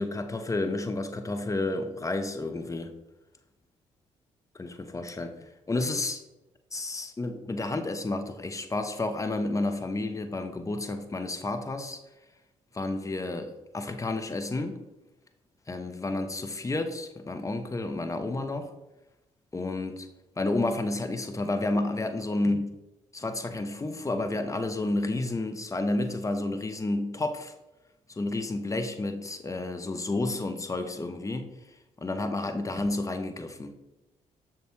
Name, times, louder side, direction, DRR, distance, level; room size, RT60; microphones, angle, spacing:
voice 1, 0.0-2.9 4.5-6.2 6.7-12.0 12.7-14.8 15.7-18.7 19.5-20.1 20.4-22.7 23.1-27.5 28.2-31.5 32.0-33.7, left 2 dB, 20° left, 8 dB, 0.6 m, -31 dB
6.4 x 2.2 x 3.0 m, 0.96 s
hypercardioid pair, 45°, 16 cm